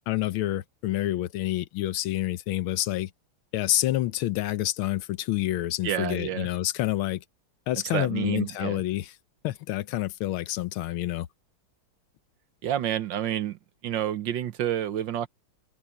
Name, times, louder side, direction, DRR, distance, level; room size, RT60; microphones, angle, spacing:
voice 1, 0.1-3.1 3.5-7.2 7.7-9.1 9.4-11.3, left 15 dB, 90° left, 1.6 m, -28 dB
voice 2, 5.8-6.5 7.9-8.8 12.6-15.3, right 11 dB, 65° right, 1.5 m, -29 dB
omnidirectional pair, 2.2 m